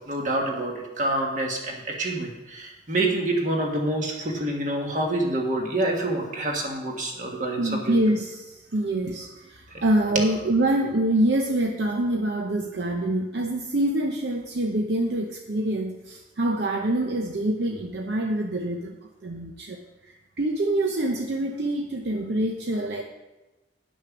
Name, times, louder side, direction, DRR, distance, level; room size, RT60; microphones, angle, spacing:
voice 1, 0.1-8.0, right 1 dB, 45° right, 0 dB, 1.7 m, -27 dB
voice 2, 7.6-19.0 19.2-23.0, right 1 dB, 65° right, 2 dB, 0.7 m, -25 dB
10.0 x 6.3 x 6.0 m, 1.1 s
head